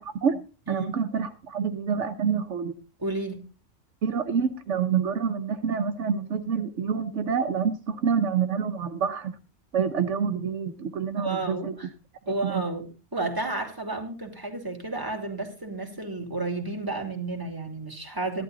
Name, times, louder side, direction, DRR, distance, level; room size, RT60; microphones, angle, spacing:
voice 1, 0.7-2.7 4.0-9.3 9.7-11.7 12.4-12.6, right 6 dB, 80° right, 8 dB, 1.2 m, -27 dB
voice 2, 3.0-3.4 11.2-11.9 12.3-12.9 13.1-18.4, right 3 dB, 15° right, 2 dB, 2.8 m, -31 dB
14.5 x 11.5 x 3.9 m, 0.34 s
omnidirectional pair, 1.2 m